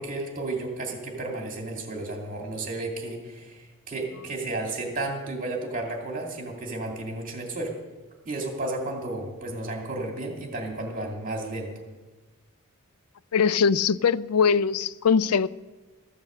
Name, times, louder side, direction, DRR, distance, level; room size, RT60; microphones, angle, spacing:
voice 1, 0.0-7.7 8.2-11.7, right 2 dB, 40° right, 2.5 m, -33 dB
voice 2, 13.3-15.5, left 6 dB, 80° left, 0.4 m, -21 dB
14.5 x 8.6 x 7.5 m
head